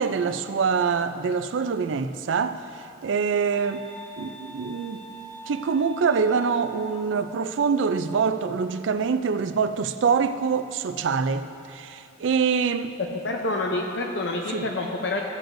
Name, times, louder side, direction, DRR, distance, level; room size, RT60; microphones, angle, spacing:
voice 1, 0.0-3.9 4.2-5.0 5.5-13.0 14.5-14.7, right 5 dB, 85° right, 0.4 m, -25 dB
sound 1, 3.5-7.2, equal, 10° left, 1.3 m, -43 dB
voice 2, 13.2-15.2, left 2 dB, 65° left, 0.6 m, -27 dB
14.5 x 7.8 x 2.6 m
head